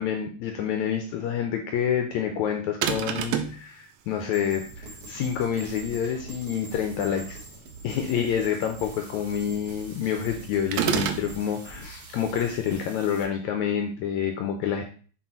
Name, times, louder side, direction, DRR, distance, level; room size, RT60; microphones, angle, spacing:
voice 1, 0.0-7.4 7.8-14.8, left 8 dB, 75° left, 5 dB, 1.7 m, -28 dB
sound 1, 2.8-3.6 10.7-11.3, right 8 dB, 80° right, 1.7 m, -26 dB
sound 2, 4.3-13.2, right 1 dB, 45° right, 1.2 m, -46 dB
sound 3, 4.7-12.7, right 6 dB, 65° right, 2.3 m, -47 dB
6.8 x 4.1 x 4.4 m, 0.42 s
omnidirectional pair, 3.8 m